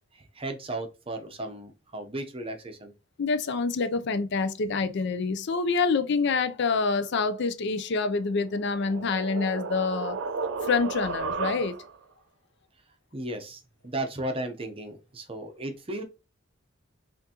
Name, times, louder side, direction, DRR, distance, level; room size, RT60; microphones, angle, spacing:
voice 1, 0.1-2.9 13.1-16.0, right 1 dB, 30° right, 0.7 m, -35 dB
voice 2, 3.2-10.2 10.7-11.7, left 4 dB, 60° left, 0.5 m, -26 dB
sound 1, 8.3-12.0, right 4 dB, 65° right, 0.4 m, -34 dB
5.8 x 2.5 x 2.8 m
head